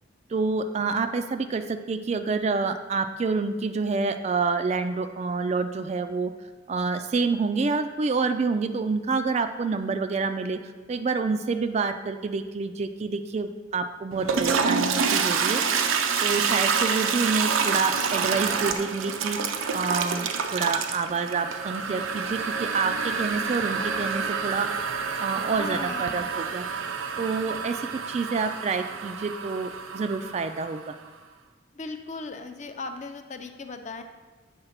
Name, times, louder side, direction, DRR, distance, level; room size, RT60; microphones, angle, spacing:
voice 1, 0.3-6.3 6.7-10.6 10.9-15.6 16.2-19.4 19.7-24.7 25.2-26.8 27.2-31.0, right 4 dB, 35° right, 9 dB, 0.3 m, -28 dB
Toilet flush, 14.1-30.9, right 6 dB, 85° right, 0.5 m, -28 dB
voice 2, 25.5-26.3 31.7-34.0, left 3 dB, 35° left, 7 dB, 0.5 m, -37 dB
8.0 x 3.9 x 5.7 m, 1.3 s
head